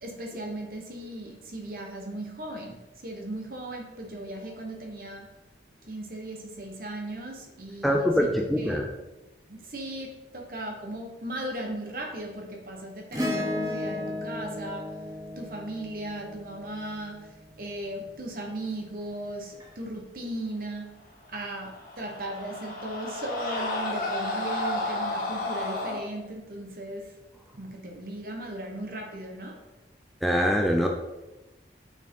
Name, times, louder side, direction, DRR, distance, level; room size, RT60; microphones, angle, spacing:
voice 1, 0.0-5.3 5.8-8.8 9.5-15.0 15.4-21.0 21.3-27.2 27.5-29.6, right 1 dB, 55° right, 2 dB, 1.0 m, -37 dB
voice 2, 7.8-8.9 30.2-30.9, equal, ahead, 1 dB, 0.4 m, -23 dB
Acoustic guitar / Strum, 13.1-17.7 19.6-19.7, left 1 dB, 20° right, 1.1 m, -34 dB
Screaming, 21.5-26.0, left 2 dB, 50° left, 1.6 m, -32 dB
5.9 x 4.5 x 3.7 m, 1.0 s
head